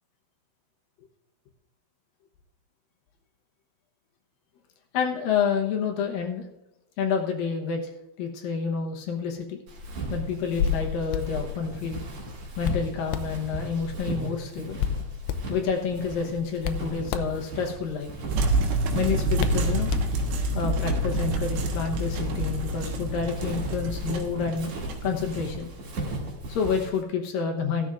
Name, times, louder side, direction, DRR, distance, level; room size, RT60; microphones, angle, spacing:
voice 1, 4.9-6.4 7.0-7.9 8.2-9.6 10.1-12.0 12.6-14.8 15.5-18.1 18.9-19.9 20.5-24.7 25.0-25.7 26.5-27.9, left 6 dB, 70° left, 2 dB, 2.4 m, -29 dB
Walk footsteps, 9.7-27.0, right 2 dB, 50° right, 3.0 m, -37 dB
Hands, 10.3-20.6, left 8 dB, 85° left, 2.8 m, -33 dB
sound 1, 18.3-25.9, right 1 dB, 75° right, 3.2 m, -28 dB
16.0 x 13.0 x 2.5 m, 0.90 s
omnidirectional pair, 5.0 m